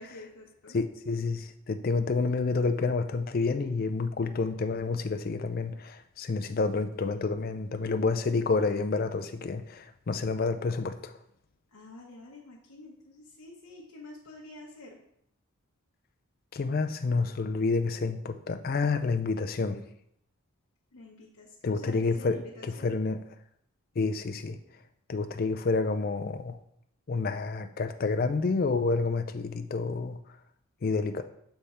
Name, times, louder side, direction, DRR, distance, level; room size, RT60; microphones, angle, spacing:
voice 1, 0.0-0.8 11.7-15.0 20.9-22.9, left 1 dB, 90° left, 0.8 m, -48 dB
voice 2, 0.7-11.1 16.5-19.9 21.6-23.2 24.0-24.6 25.1-26.6 27.1-30.2 30.8-31.2, left 4 dB, 40° left, 0.4 m, -29 dB
6.5 x 3.5 x 4.2 m
head